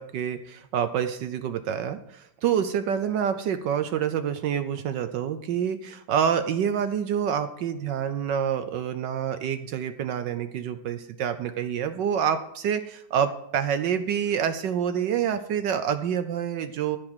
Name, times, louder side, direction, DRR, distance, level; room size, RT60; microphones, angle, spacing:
voice 1, 0.0-17.0, right 8 dB, 70° right, 10 dB, 1.2 m, -27 dB
14.0 x 4.9 x 7.9 m, 0.78 s
omnidirectional pair, 2.3 m